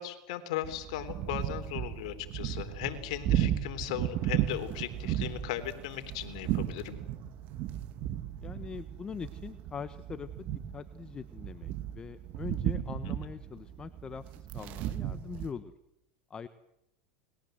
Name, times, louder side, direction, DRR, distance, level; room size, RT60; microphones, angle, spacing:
voice 1, 0.0-7.0, left 12 dB, 70° left, 8 dB, 3.7 m, -37 dB
sound 1, 0.6-15.5, right 12 dB, 50° right, 2.2 m, -35 dB
voice 2, 8.4-15.7 16.3-16.5, left 6 dB, 25° left, 11 dB, 1.2 m, -42 dB
29.5 x 21.5 x 8.0 m, 0.81 s
supercardioid pair, 115°, 4 cm